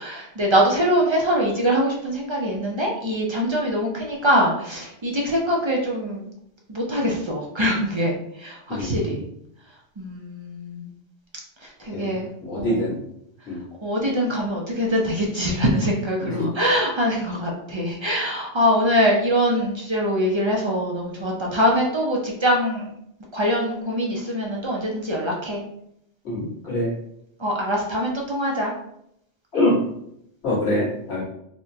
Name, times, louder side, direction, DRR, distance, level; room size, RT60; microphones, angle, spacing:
voice 1, 0.0-6.3 6.7-9.2 10.0-10.9 11.6-12.3 12.6-12.8 13.8-22.9 23.3-25.6 27.4-28.7, equal, 40° right, -2 dB, 0.4 m, -23 dB
voice 2, 8.7-9.2 11.9-13.0 13.5-13.6 16.2-16.5 26.2-26.9 29.5-29.8 30.4-31.2, left 1 dB, 70° left, -9 dB, 2.0 m, -25 dB
4.2 x 2.1 x 2.7 m, 0.76 s
omnidirectional pair, 1.2 m